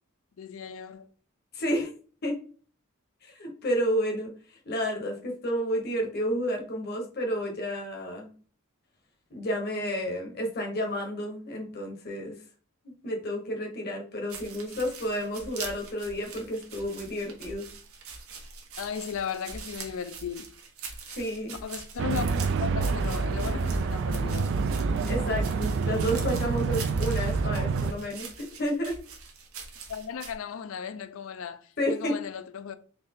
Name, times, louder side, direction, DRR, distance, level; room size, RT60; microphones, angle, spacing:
voice 1, 0.4-1.1 18.8-20.5 21.6-22.3 22.6-24.5 29.9-32.8, left 7 dB, 65° left, 0.4 m, -36 dB
voice 2, 1.5-1.9 2.2-2.4 3.3-4.3 4.7-8.3 9.3-12.3 13.0-17.7 21.1-21.6 25.1-29.0 31.8-32.1, equal, 50° left, 0.9 m, -31 dB
sound 1, 14.3-30.3, right 5 dB, 80° right, 0.9 m, -43 dB
sound 2, 22.0-27.9, right 4 dB, 60° right, 0.3 m, -27 dB
4.0 x 2.6 x 3.5 m
head